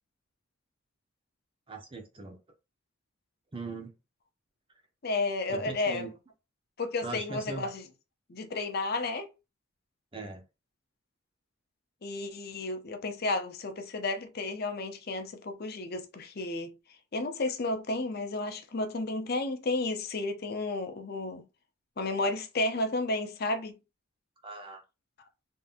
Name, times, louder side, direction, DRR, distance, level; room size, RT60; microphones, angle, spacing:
voice 1, 1.7-2.4 3.5-3.9 5.5-6.1 7.0-7.7 10.1-10.4 24.4-24.8, right 3 dB, 25° right, 0.8 m, -40 dB
voice 2, 5.0-6.1 6.8-7.8 8.3-9.3 12.0-16.7 17.1-21.4 22.0-23.7, left 2 dB, 50° left, 0.6 m, -32 dB
3.6 x 2.7 x 2.5 m
head